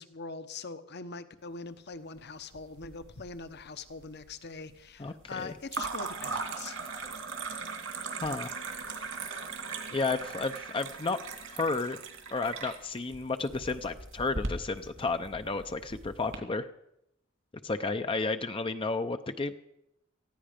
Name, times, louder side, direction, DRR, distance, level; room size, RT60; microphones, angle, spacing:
voice 1, 0.0-6.8, left 4 dB, 55° left, 11 dB, 1.0 m, -42 dB
sound 1, 2.5-3.3 3.6-4.2 5.7-16.4, right 4 dB, 75° right, 2.6 m, -39 dB
voice 2, 5.0-5.5 8.2-8.5 9.9-11.2 11.5-12.0 12.3-16.7 17.6-19.5, left 3 dB, 25° left, 8 dB, 0.6 m, -32 dB
19.0 x 14.5 x 5.1 m, 0.80 s
head